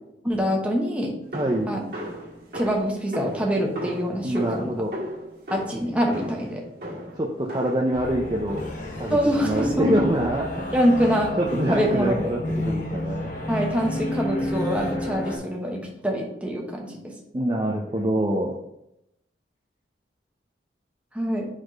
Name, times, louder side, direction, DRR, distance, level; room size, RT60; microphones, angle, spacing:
voice 1, 0.2-1.1 1.7-1.8 2.5-4.7 5.5-6.6 9.1-9.9 10.7-11.3 11.7-12.3 13.5-17.1 21.1-21.5, equal, 5° right, -1 dB, 1.0 m, -25 dB
voice 2, 1.3-1.7 4.2-4.9 7.2-8.6 9.0-10.8 11.4-13.3 17.3-18.6, right 1 dB, 25° right, -1 dB, 0.5 m, -25 dB
sound 1, 1.3-8.0 8.5-8.9 9.6-10.1, equal, 60° right, 1.7 m, -36 dB
sound 2, 7.9-15.4, left 1 dB, 45° left, 1.2 m, -31 dB
4.8 x 4.2 x 5.2 m, 0.84 s
head